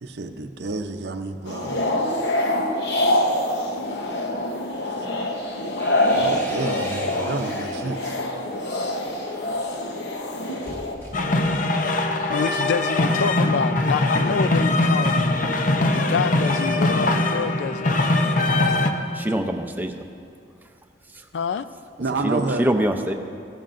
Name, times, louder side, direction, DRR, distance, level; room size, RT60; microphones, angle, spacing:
voice 1, 0.0-2.0 6.1-8.2 22.0-22.7, right 3 dB, 70° right, 7 dB, 0.6 m, -29 dB
sound 1, 1.5-11.0, left 1 dB, 70° left, 1.0 m, -25 dB
sound 2, 5.4-8.0 8.5-11.8, equal, 15° left, 1.6 m, -42 dB
sound 3, 11.1-18.9, left 2 dB, 45° left, 0.6 m, -21 dB
voice 2, 12.3-15.4 15.9-18.0 21.3-21.7, left 5 dB, 85° left, 14 dB, 0.4 m, -27 dB
voice 3, 19.1-20.0 21.1-21.3 22.2-23.1, right 1 dB, 10° right, 4 dB, 0.6 m, -24 dB
16.0 x 12.5 x 2.6 m, 2.4 s
head